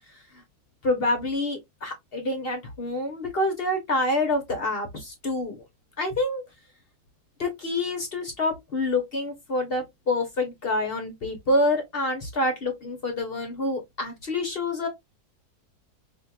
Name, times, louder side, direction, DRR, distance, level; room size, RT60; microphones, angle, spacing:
voice 1, 0.8-5.6 6.0-6.4 7.4-14.9, left 2 dB, 50° left, 0.8 m, -27 dB
4.3 x 2.8 x 2.2 m
omnidirectional pair, 1.7 m